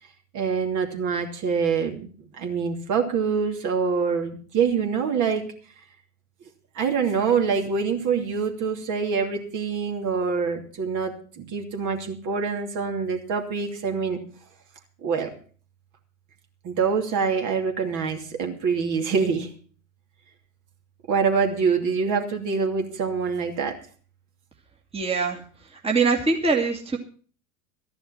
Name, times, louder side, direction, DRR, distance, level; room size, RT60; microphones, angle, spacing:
voice 1, 0.3-2.1 2.4-5.5 6.7-14.2 15.0-15.3 16.6-19.5 21.1-23.8, right 5 dB, 40° right, 3 dB, 2.7 m, -25 dB
voice 2, 24.9-25.4 25.7-27.0, right 4 dB, 15° right, 1 dB, 2.2 m, -23 dB
13.5 x 10.5 x 5.8 m, 0.42 s
hypercardioid pair, 90°, 45 cm